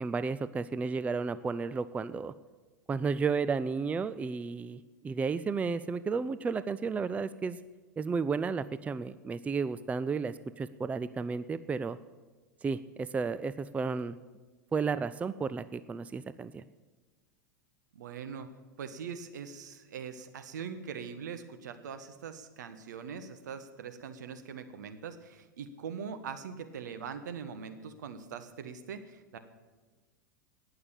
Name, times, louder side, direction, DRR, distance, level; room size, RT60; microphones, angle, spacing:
voice 1, 0.0-2.3 2.9-7.6 8.0-12.0 12.6-14.2 14.7-16.6, right 5 dB, 15° right, 14 dB, 0.4 m, -33 dB
voice 2, 17.9-18.5 18.8-29.4, right 6 dB, 65° right, 9 dB, 1.4 m, -42 dB
18.5 x 6.7 x 8.7 m, 1.3 s
figure-of-eight pair, 90°, 10 cm